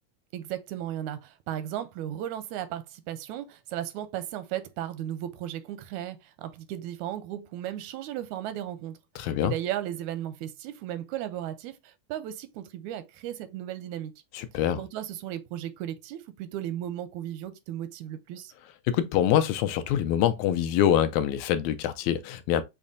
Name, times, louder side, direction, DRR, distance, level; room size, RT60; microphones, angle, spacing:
voice 1, 0.3-14.1 14.8-18.5, right 12 dB, 85° right, 2.0 m, -35 dB
voice 2, 9.2-9.5 14.3-14.8 18.9-22.6, left 10 dB, 85° left, 2.0 m, -25 dB
6.7 x 3.1 x 2.6 m
omnidirectional pair, 3.4 m